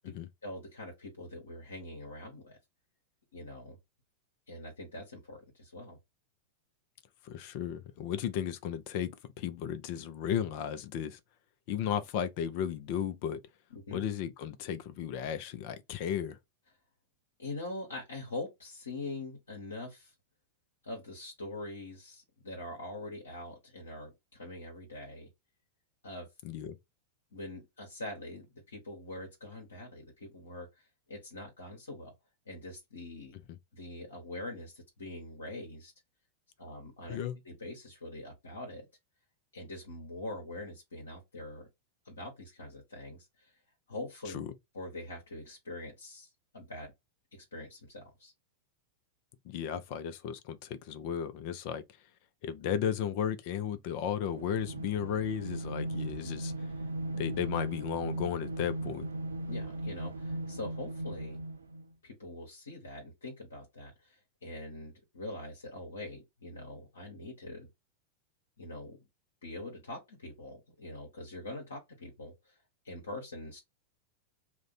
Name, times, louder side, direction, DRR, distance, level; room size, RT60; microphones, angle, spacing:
voice 1, 0.4-2.6 3.3-3.8 4.5-6.0 13.7-14.0 17.4-20.1 20.8-25.3 26.0-26.3 27.3-32.1 32.5-33.3 33.7-35.9 36.6-37.2 37.4-38.8 39.5-41.7 42.0-43.6 43.9-44.4 44.7-46.9 47.3-48.3 59.5-61.4 62.0-67.7 68.6-69.0 69.4-72.6 72.8-73.6, left 2 dB, 70° left, 1.0 m, -43 dB
voice 2, 7.2-9.1 9.4-11.2 11.7-13.4 13.9-16.4 26.4-26.8 37.1-37.4 44.3-44.5 49.4-51.8 52.4-56.5 57.1-59.0, left 9 dB, 45° left, 0.5 m, -34 dB
sound 1, 54.2-61.9, right 1 dB, 75° right, 0.4 m, -38 dB
2.5 x 2.2 x 4.0 m
figure-of-eight pair, 90°, 0 cm